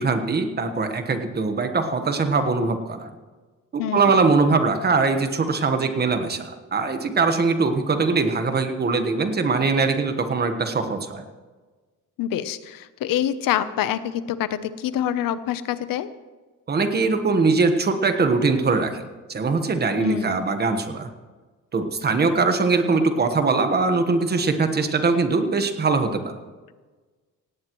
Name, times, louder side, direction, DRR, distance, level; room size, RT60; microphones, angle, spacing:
voice 1, 0.0-3.1 3.7-11.2 16.7-19.0 19.3-21.1 21.7-26.3, right 4 dB, 30° right, 7 dB, 1.3 m, -22 dB
voice 2, 3.8-4.1 12.2-16.1 20.0-20.5, left 10 dB, 85° left, 13 dB, 0.9 m, -26 dB
17.5 x 17.5 x 3.1 m, 1.3 s
cardioid pair, 155°, 33 cm